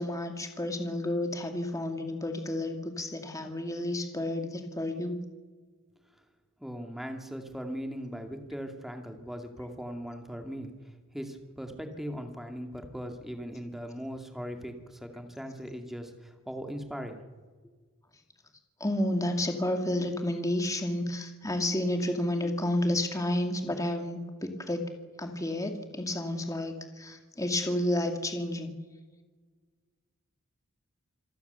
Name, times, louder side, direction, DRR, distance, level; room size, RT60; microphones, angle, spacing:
voice 1, 0.0-5.2 18.8-24.8 25.2-28.8, left 1 dB, 15° left, 4 dB, 2.2 m, -31 dB
voice 2, 6.6-17.2, equal, ahead, 4 dB, 2.3 m, -39 dB
27.0 x 18.5 x 7.0 m, 1.4 s
head